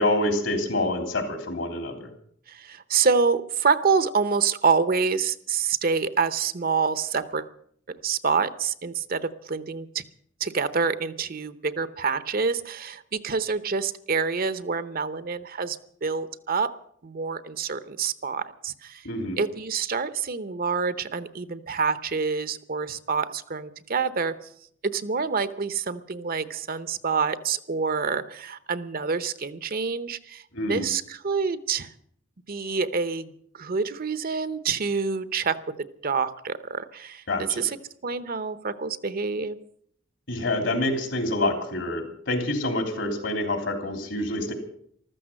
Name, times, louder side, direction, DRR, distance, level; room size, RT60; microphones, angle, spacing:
voice 1, 0.0-2.1 19.0-19.4 30.5-30.9 37.3-37.6 40.3-44.5, left 1 dB, 70° left, 6 dB, 3.5 m, -27 dB
voice 2, 2.5-7.4 7.9-10.0 10.4-16.7 17.0-19.1 19.4-24.3 24.8-31.9 32.5-37.8 38.0-39.6, right 5 dB, 50° right, 14 dB, 0.8 m, -27 dB
14.5 x 13.5 x 7.6 m, 0.65 s
head